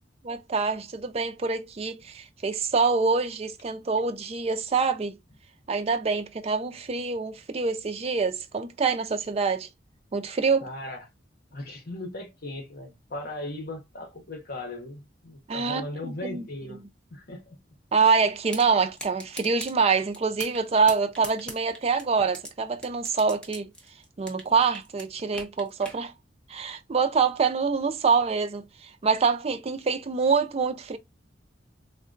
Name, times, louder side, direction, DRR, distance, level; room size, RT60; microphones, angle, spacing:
voice 1, 0.2-5.2 5.7-9.7 10.1-10.7 15.5-16.4 17.9-23.7 24.2-26.1 26.5-31.0, right 5 dB, 35° right, 0.4 m, -25 dB
voice 2, 10.6-11.1 11.5-16.8 17.1-17.6, left 1 dB, 55° left, 0.9 m, -38 dB
sound 1, 18.5-18.6 19.0-19.7 20.1-20.6 20.9-22.5 22.8-24.5 24.7-26.0, equal, 5° left, 0.7 m, -39 dB
3.6 x 2.2 x 2.5 m
head